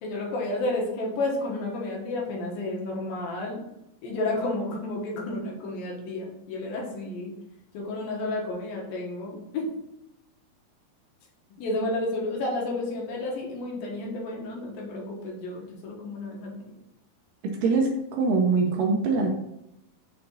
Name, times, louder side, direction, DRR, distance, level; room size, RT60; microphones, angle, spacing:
voice 1, 0.0-3.7 4.0-7.3 7.7-9.7 11.6-16.7, left 2 dB, 75° left, -1 dB, 3.0 m, -31 dB
voice 2, 17.6-19.3, right 4 dB, 75° right, 1 dB, 2.2 m, -23 dB
6.6 x 4.4 x 3.9 m, 0.85 s
omnidirectional pair, 4.4 m